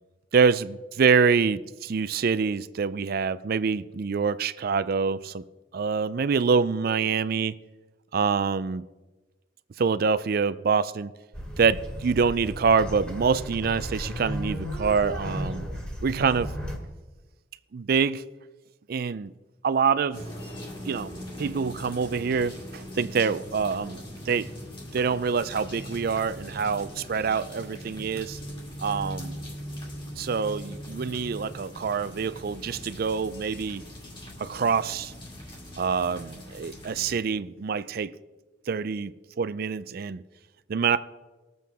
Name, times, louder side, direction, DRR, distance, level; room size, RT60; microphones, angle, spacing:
voice 1, 0.3-5.4 5.7-7.6 8.1-8.8 9.8-11.1 11.6-15.7 16.0-16.5 17.7-18.2 18.9-19.3 19.6-20.2 20.8-21.1 21.4-24.0 24.3-24.5 24.9-28.4 28.8-29.4 30.2-33.8 34.4-35.1 35.8-38.1 38.7-40.2 40.7-41.0, right 5 dB, 50° right, 0.4 m, -25 dB
sound 1, 11.3-16.8, equal, 5° left, 2.0 m, -34 dB
sound 2, 20.1-37.2, equal, 25° left, 2.1 m, -40 dB
20.5 x 7.6 x 3.5 m
head